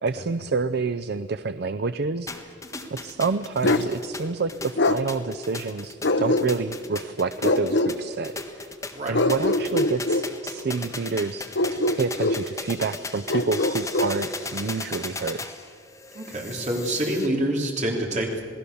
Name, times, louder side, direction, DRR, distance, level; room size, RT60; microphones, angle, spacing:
voice 1, 0.0-2.5 3.0-8.7 9.1-15.4, right 4 dB, 60° right, 12 dB, 0.5 m, -28 dB
sound 1, 2.3-17.3, left 3 dB, 15° left, 1.5 m, -37 dB
Bark, 3.6-3.9 4.8-5.0 6.0-6.8 7.4-7.9 9.1-10.3 11.5-12.4 13.3-14.2, left 2 dB, 70° left, 1.0 m, -23 dB
voice 2, 16.1-18.4, right 1 dB, 40° right, 0 dB, 3.7 m, -26 dB
27.5 x 18.5 x 7.0 m, 2.3 s
head